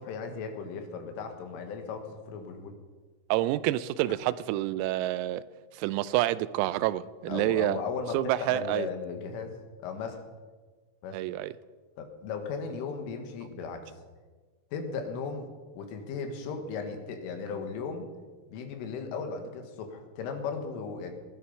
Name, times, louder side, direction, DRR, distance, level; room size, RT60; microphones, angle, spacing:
voice 1, 0.0-2.7 7.3-9.5 9.8-10.2 11.0-11.2 12.0-13.9 14.7-15.4 15.8-18.1 18.5-21.1, left 5 dB, 75° left, 5 dB, 4.1 m, -36 dB
voice 2, 3.3-5.4 5.7-7.8 8.1-8.9 11.1-11.5, right 15 dB, 90° right, 16 dB, 3.4 m, -28 dB
19.5 x 12.5 x 5.7 m, 1.4 s
omnidirectional pair, 6.0 m